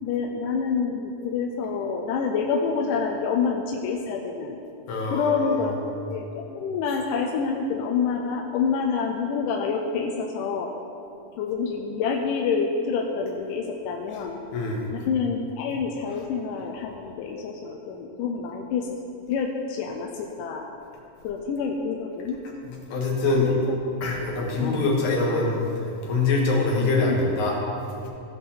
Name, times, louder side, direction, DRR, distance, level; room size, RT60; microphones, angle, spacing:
voice 1, 0.0-4.6 5.1-5.7 6.1-10.7 11.4-14.4 14.9-19.0 19.3-20.7 21.2-22.4 23.4-24.1 24.6-24.8 26.8-27.3, left 5 dB, 80° left, 1 dB, 2.0 m, -27 dB
voice 2, 4.9-5.7 14.5-14.9 22.9-23.5 24.0-25.6 26.0-27.6, left 3 dB, 60° left, -2 dB, 2.7 m, -24 dB
16.0 x 5.4 x 4.2 m, 2.6 s
omnidirectional pair, 4.2 m